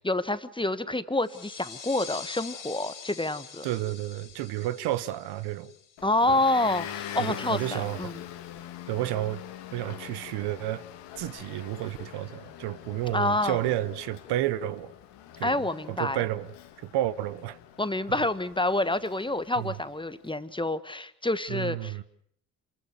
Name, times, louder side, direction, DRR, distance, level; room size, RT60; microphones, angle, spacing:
voice 1, 0.0-3.7 6.0-8.2 13.1-13.6 15.4-16.2 17.8-22.0, left 2 dB, 10° left, 1.5 m, -28 dB
sound 1, 1.2-6.6, left 7 dB, 50° left, 3.2 m, -45 dB
voice 2, 3.6-5.7 6.3-6.4 7.2-8.1 8.9-9.4 9.7-10.8 11.2-14.9 15.4-15.6 15.9-16.5 16.8-17.6 18.1-18.2 19.6-19.7 21.5-22.0, right 14 dB, 70° right, 0.9 m, -31 dB
Motor vehicle (road) / Engine, 6.0-20.2, left 11 dB, 75° left, 1.8 m, -43 dB
27.5 x 14.5 x 9.5 m
hypercardioid pair, 45°, 42 cm